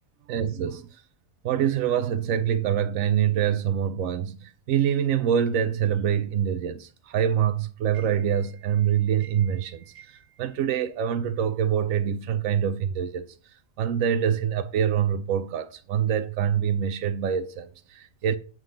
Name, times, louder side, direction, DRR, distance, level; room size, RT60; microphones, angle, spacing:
voice 1, 0.3-0.9 1.4-13.3 13.8-18.4, right 9 dB, 80° right, 1.1 m, -25 dB
7.9 x 3.8 x 6.4 m
omnidirectional pair, 1.4 m